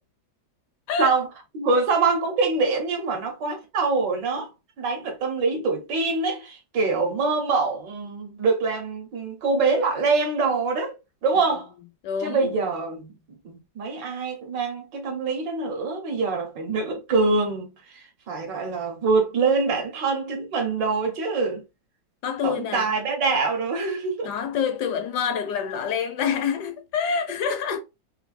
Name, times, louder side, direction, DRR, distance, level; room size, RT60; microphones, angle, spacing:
voice 1, 1.5-4.5 4.8-11.0 11.2-11.7 12.2-13.2 13.4-21.6 22.4-24.3 27.5-27.6, right 4 dB, 75° right, 1.7 m, -24 dB
voice 2, 12.0-12.5 22.2-22.9 24.2-27.8, left 7 dB, 75° left, 1.1 m, -27 dB
4.5 x 2.3 x 2.5 m
omnidirectional pair, 2.0 m